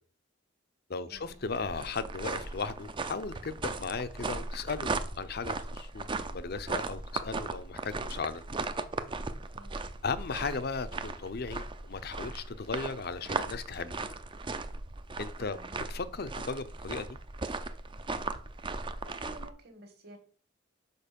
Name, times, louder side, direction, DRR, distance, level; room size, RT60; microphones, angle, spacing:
voice 1, 0.9-8.4 10.0-14.0 15.2-15.6 15.9-17.2, left 4 dB, 50° left, 0.6 m, -36 dB
sound 1, 1.2-19.5, right 3 dB, 25° right, 0.5 m, -37 dB
voice 2, 9.5-9.9 15.5-15.7 19.0-20.2, right 1 dB, 55° right, 1.8 m, -51 dB
6.7 x 5.3 x 5.2 m
head